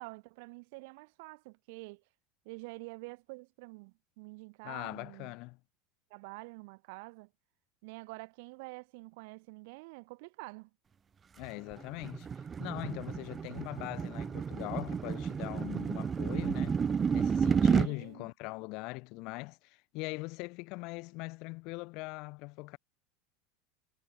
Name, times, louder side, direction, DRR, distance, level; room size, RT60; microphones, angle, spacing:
voice 1, 0.0-2.0 2.4-5.3 6.1-7.3 7.8-10.7 17.6-18.3, right 28 dB, 60° right, 1.7 m, -47 dB
voice 2, 4.6-5.6 11.4-12.3 12.6-16.8 17.1-22.8, left 25 dB, 50° left, 1.2 m, -41 dB
sound 1, 11.4-17.9, right 6 dB, 15° right, 0.4 m, -31 dB
supercardioid pair, 165°, 0 cm